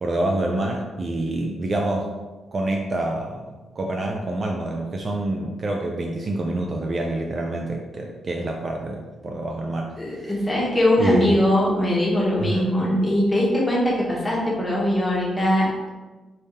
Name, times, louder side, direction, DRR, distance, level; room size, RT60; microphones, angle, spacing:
voice 1, 0.0-2.1 2.5-10.3 11.0-11.4 12.4-12.8, right 2 dB, 30° right, 1 dB, 0.4 m, -27 dB
voice 2, 10.0-15.9, left 1 dB, 10° left, -5 dB, 1.1 m, -21 dB
4.2 x 3.5 x 3.5 m, 1.3 s
wide cardioid pair, 155°, 0 cm